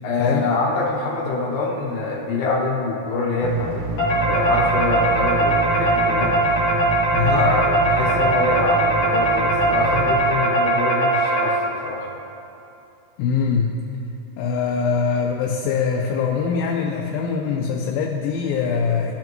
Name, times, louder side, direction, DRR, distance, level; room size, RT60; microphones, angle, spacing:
voice 1, 0.0-6.3 7.3-11.6 11.8-12.1, left 3 dB, 70° left, -3 dB, 2.3 m, -25 dB
sound 1, 3.4-10.2, right 2 dB, 80° right, 2.5 m, -28 dB
sound 2, 4.0-11.8, right 2 dB, 55° left, 2.6 m, -20 dB
voice 2, 7.1-7.5 13.2-13.7 14.4-19.1, left 6 dB, 85° left, 0 dB, 2.4 m, -23 dB
13.5 x 5.7 x 3.0 m, 2.7 s
omnidirectional pair, 4.1 m